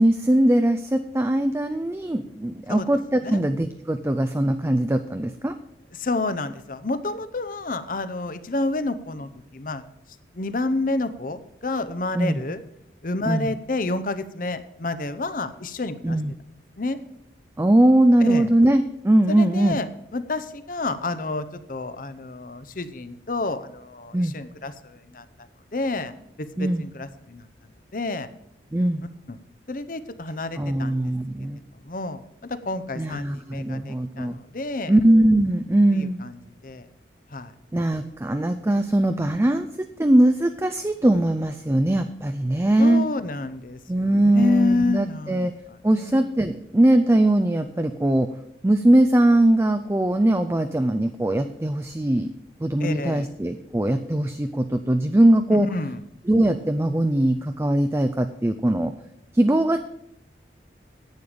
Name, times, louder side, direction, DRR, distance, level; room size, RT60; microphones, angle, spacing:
voice 1, 0.0-5.5 12.1-12.4 13.2-13.5 16.0-16.3 17.6-19.8 24.1-24.3 26.6-26.8 28.7-29.0 30.6-31.6 33.0-34.4 34.9-36.2 37.7-43.0 43.9-45.5 45.8-48.3 48.6-52.3 52.6-55.7 56.3-58.9 59.3-59.8, right 1 dB, 15° right, 8 dB, 0.4 m, -21 dB
voice 2, 5.9-9.8 10.3-12.6 13.0-16.2 16.8-17.0 18.2-18.5 19.3-19.9 20.1-25.2 25.7-26.1 26.4-27.5 27.9-28.3 29.3-29.4 29.7-31.1 31.8-34.9 35.9-36.9 37.3-37.5 42.8-45.4 46.0-46.2 52.8-53.3 55.5-56.0, left 2 dB, 45° left, 12 dB, 0.7 m, -29 dB
10.5 x 8.8 x 5.0 m, 0.78 s
head